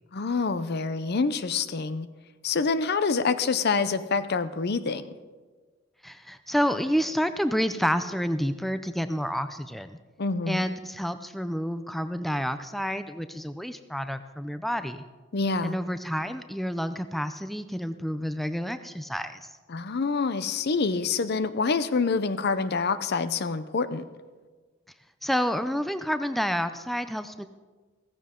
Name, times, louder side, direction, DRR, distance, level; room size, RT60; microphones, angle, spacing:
voice 1, 0.1-2.1 2.4-5.1 10.2-10.6 15.3-15.8 19.7-24.0, left 4 dB, 55° left, 13 dB, 0.6 m, -26 dB
voice 2, 6.0-10.0 10.5-15.0 15.6-19.5 25.2-27.5, equal, ahead, 10 dB, 0.4 m, -29 dB
15.5 x 15.0 x 3.7 m, 1.4 s
head